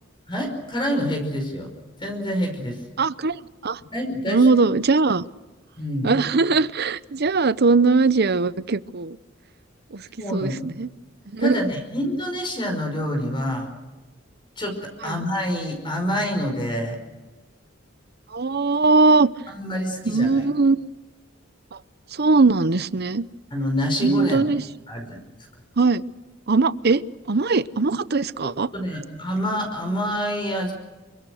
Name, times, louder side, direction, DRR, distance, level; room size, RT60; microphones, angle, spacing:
voice 1, 0.3-1.7 2.0-2.8 3.9-4.4 5.8-6.2 10.2-10.5 11.4-13.7 14.6-17.0 19.5-20.4 23.5-24.4 24.9-25.2 28.7-30.7, equal, 25° left, 3 dB, 5.3 m, -27 dB
voice 2, 3.0-3.8 4.3-5.2 6.0-9.2 9.9-10.9 11.3-11.6 15.0-15.2 18.3-19.3 20.0-20.9 21.7-21.8 22.1-23.2 24.0-24.6 25.8-26.0 26.5-27.0 27.3-28.7, right 3 dB, 55° right, 16 dB, 0.8 m, -20 dB
28.0 x 24.0 x 6.5 m, 1.2 s
head